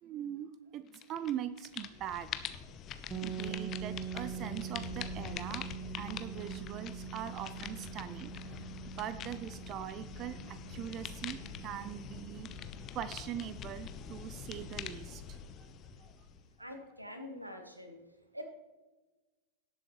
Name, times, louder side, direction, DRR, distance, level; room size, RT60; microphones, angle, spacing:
voice 1, 0.0-2.6 3.0-5.7 5.9-8.7 9.0-15.7 16.0-16.1, right 10 dB, 35° right, 13 dB, 0.5 m, -42 dB
sound 1, 0.9-1.3 1.6-16.6, left 8 dB, 30° left, 0.8 m, -45 dB
sound 2, 3.1-12.9, right 8 dB, 20° right, 1.1 m, -44 dB
voice 2, 16.6-18.0 18.3-18.4, left 1 dB, 85° right, 5 dB, 1.6 m, -45 dB
18.0 x 7.7 x 3.1 m, 1.2 s
figure-of-eight pair, 90°, 0 cm